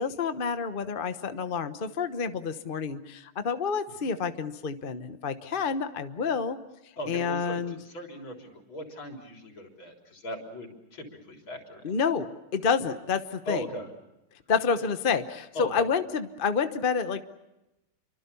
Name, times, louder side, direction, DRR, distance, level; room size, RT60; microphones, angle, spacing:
voice 1, 0.0-6.6 7.1-7.8 11.8-12.3 12.5-13.6 14.5-17.2, left 5 dB, 40° left, 9 dB, 0.8 m, -28 dB
voice 2, 7.0-12.0 13.5-13.9 15.5-15.9, equal, 65° left, 2 dB, 4.6 m, -39 dB
29.0 x 24.5 x 7.0 m, 0.95 s
omnidirectional pair, 2.4 m